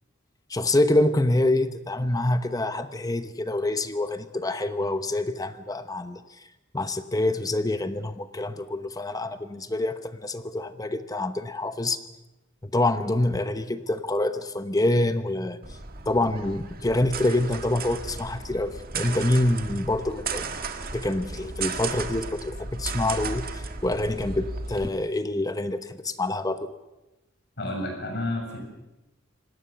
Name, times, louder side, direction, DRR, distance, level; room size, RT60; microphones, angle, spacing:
voice 1, 0.5-6.2 6.7-12.0 12.7-15.6 16.1-20.5 20.9-26.7, left 1 dB, 20° left, 10 dB, 0.9 m, -26 dB
sound 1, 15.6-24.9, right 4 dB, 50° right, 1.7 m, -35 dB
voice 2, 27.6-28.6, left 1 dB, 60° left, 3 dB, 7.0 m, -30 dB
26.0 x 19.0 x 6.9 m, 1.0 s
head